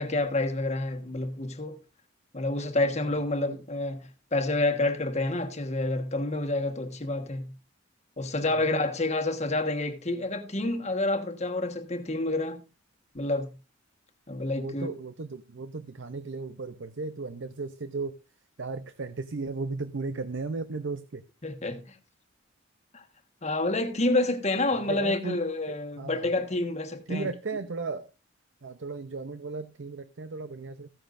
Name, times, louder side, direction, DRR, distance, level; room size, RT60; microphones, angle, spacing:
voice 1, 0.0-1.8 2.3-7.5 8.2-12.6 13.1-13.5 14.3-14.9 21.4-22.0 22.9-23.0 23.4-27.3, left 2 dB, 35° left, 1.4 m, -28 dB
voice 2, 8.5-8.8 14.6-18.2 18.6-21.2 24.7-25.4 25.7-26.3 27.1-28.1 28.6-30.9, right 3 dB, 65° right, 0.6 m, -35 dB
15.0 x 10.5 x 2.6 m
head